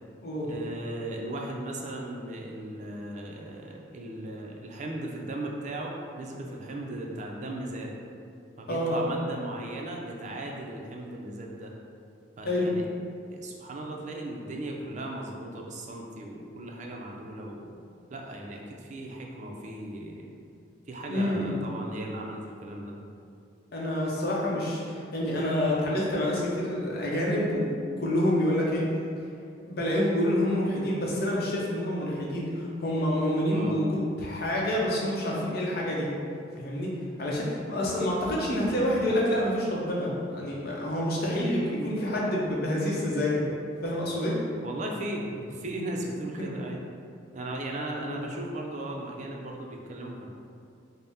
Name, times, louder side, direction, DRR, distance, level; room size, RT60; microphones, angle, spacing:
voice 1, 0.4-7.9 8.6-11.7 12.4-12.8 13.3-17.6 18.1-20.3 20.9-22.9 33.5-33.7 44.6-46.8 47.3-50.4, right 1 dB, 40° right, 0 dB, 0.4 m, -37 dB
voice 2, 21.1-21.6 23.7-27.7 28.0-28.9 29.7-36.1 36.6-36.9 37.2-43.4 43.8-44.4 46.4-46.5 48.1-48.2, left 1 dB, 55° left, -4 dB, 0.7 m, -27 dB
4.0 x 2.1 x 3.5 m, 2.4 s
head